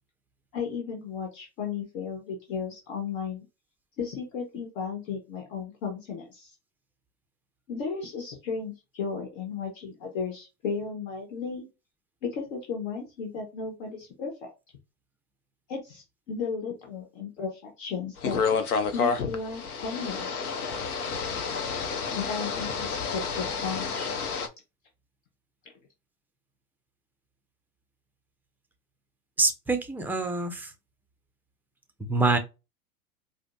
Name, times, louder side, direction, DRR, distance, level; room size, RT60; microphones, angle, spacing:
voice 1, 0.5-3.5 4.0-6.5 7.7-11.7 12.2-14.5 15.7-18.4 18.9-20.3 22.1-24.2, left 5 dB, 60° left, 1.3 m, -34 dB
sound 1, 18.2-24.5, left 5 dB, 85° left, 0.8 m, -30 dB
voice 2, 29.4-30.7 32.0-32.4, right 3 dB, 5° right, 0.4 m, -25 dB
4.9 x 2.1 x 2.5 m
hypercardioid pair, 95°, 43 cm